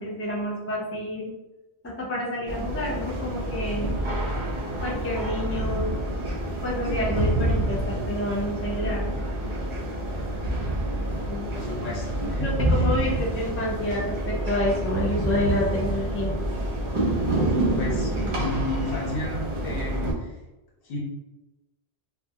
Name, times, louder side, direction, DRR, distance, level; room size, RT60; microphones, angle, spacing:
voice 1, 0.0-1.3 1.8-3.9 4.8-5.9 6.6-9.0 11.3-11.5 12.4-16.3 16.9-17.1, left 1 dB, 20° left, -4 dB, 0.3 m, -29 dB
sound 1, 2.5-20.1, right 1 dB, 55° right, 0.3 m, -27 dB
voice 2, 11.5-13.1 17.4-17.5 17.8-20.4 20.8-21.0, left 2 dB, 60° left, -3 dB, 0.9 m, -33 dB
2.2 x 2.1 x 2.7 m, 1.0 s
omnidirectional pair, 1.1 m